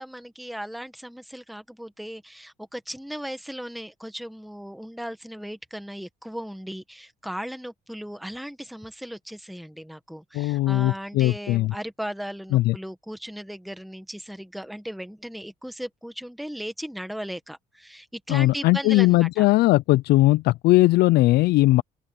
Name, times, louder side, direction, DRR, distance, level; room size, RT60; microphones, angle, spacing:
voice 1, 0.0-19.5, equal, ahead, 1.6 m, -37 dB
voice 2, 10.3-11.7 12.5-12.7 18.3-21.8, left 18 dB, 70° left, 0.4 m, -19 dB
open air
cardioid pair, 110°, 17 cm